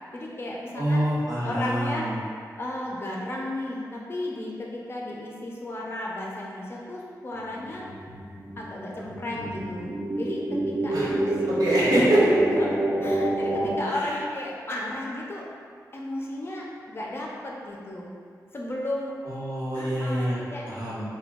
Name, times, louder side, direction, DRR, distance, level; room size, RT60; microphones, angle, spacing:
voice 1, 0.1-1.1 1.4-2.1 2.6-4.5 4.9-7.9 8.6-9.9 10.2-10.4 10.7-11.8 12.6-12.7 13.0-15.4 15.9-18.1 18.5-19.1 19.7-20.6, left 1 dB, 35° left, -3 dB, 0.4 m, -34 dB
voice 2, 0.7-2.2 10.9-11.1 11.5-12.2 13.9-14.2 19.2-21.0, right 1 dB, 80° right, -8 dB, 1.0 m, -26 dB
sound 1, 7.4-13.7, right 1 dB, 30° right, 0.5 m, -28 dB
2.9 x 2.2 x 3.4 m, 2.2 s
wide cardioid pair, 150°, 7 cm